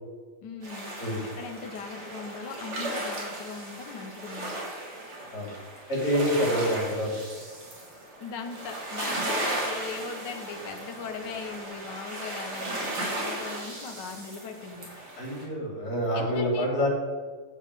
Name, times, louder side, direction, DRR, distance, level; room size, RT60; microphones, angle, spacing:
voice 1, 0.4-0.9 1.4-4.6 8.2-14.9 16.1-16.7, left 5 dB, 60° left, 4 dB, 1.7 m, -39 dB
sound 1, 0.6-15.4, right 1 dB, 90° right, 4.0 m, -36 dB
voice 2, 5.9-7.1 15.2-16.9, equal, 45° left, -4 dB, 4.4 m, -27 dB
12.0 x 7.3 x 5.0 m, 1.5 s
omnidirectional pair, 2.3 m